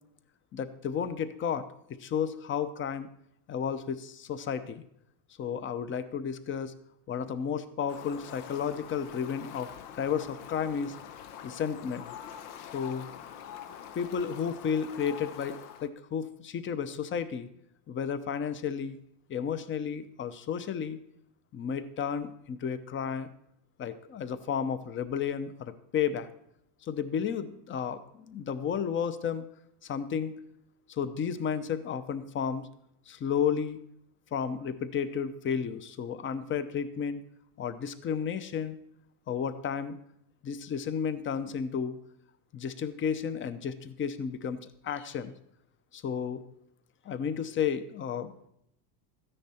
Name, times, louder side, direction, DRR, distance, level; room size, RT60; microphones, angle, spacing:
voice 1, 0.5-3.1 3.5-4.8 5.4-6.7 7.1-11.0 11.4-12.1 12.7-13.1 13.9-17.5 17.9-19.0 19.3-21.0 21.5-23.3 23.8-26.3 26.8-29.4 29.8-30.4 30.9-32.7 33.1-33.8 34.3-37.2 37.6-38.8 39.3-40.0 40.4-42.0 42.5-45.3 45.9-46.4 47.0-48.3, left 7 dB, 25° left, 13 dB, 0.7 m, -32 dB
Fowl, 7.9-15.9, left 9 dB, 80° left, 1.1 m, -45 dB
13.5 x 9.9 x 4.3 m, 0.75 s
supercardioid pair, 130°, 45 cm